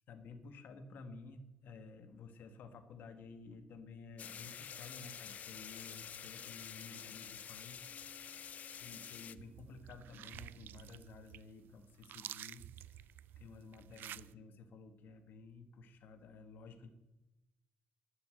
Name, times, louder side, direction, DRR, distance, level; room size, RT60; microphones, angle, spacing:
voice 1, 0.1-8.4 8.8-13.1 13.4-16.9, left 4 dB, 65° left, 9 dB, 1.5 m, -53 dB
sound 1, 4.2-9.4, left 8 dB, 45° left, 0.5 m, -48 dB
Bass guitar, 7.8-11.5, equal, 50° right, 6.2 m, -67 dB
sound 2, 9.3-14.3, right 12 dB, 70° right, 0.4 m, -51 dB
11.5 x 9.7 x 7.8 m, 1.0 s
cardioid pair, 175°, 4 cm